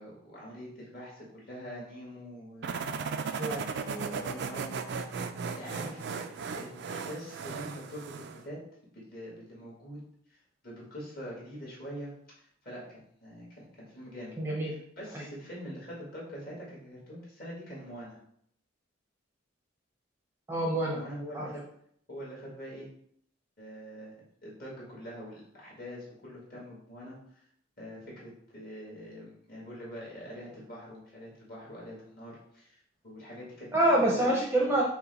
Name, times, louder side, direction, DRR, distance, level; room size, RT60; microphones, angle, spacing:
voice 1, 0.0-2.8 3.8-5.1 5.6-6.3 6.5-8.6 8.9-10.0 10.3-10.4 10.6-12.1 12.6-14.3 14.7-18.2 20.9-21.6 22.1-22.9 23.6-24.1 24.4-27.2 27.8-33.7 34.0-34.4, equal, 45° left, -5 dB, 1.7 m, -44 dB
sound 1, 2.6-8.4, right 5 dB, 55° right, 0.3 m, -36 dB
voice 2, 3.3-3.6 14.4-14.7 15.1-15.2 20.5-21.0 21.3-21.5 33.7-34.8, right 1 dB, 10° right, -3 dB, 0.6 m, -26 dB
5.5 x 2.2 x 4.0 m, 0.68 s
head